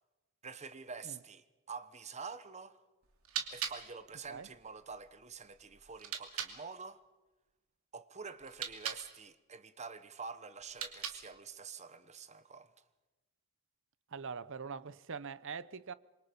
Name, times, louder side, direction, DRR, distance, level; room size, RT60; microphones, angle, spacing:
voice 1, 0.4-2.8 3.5-7.0 7.9-12.7, right 5 dB, 35° right, 1.1 m, -47 dB
sound 1, 3.0-6.6 8.4-9.1 10.6-11.4, right 8 dB, 80° right, 2.7 m, -42 dB
voice 2, 14.1-15.9, right 5 dB, 60° right, 0.8 m, -43 dB
27.0 x 23.5 x 5.3 m
head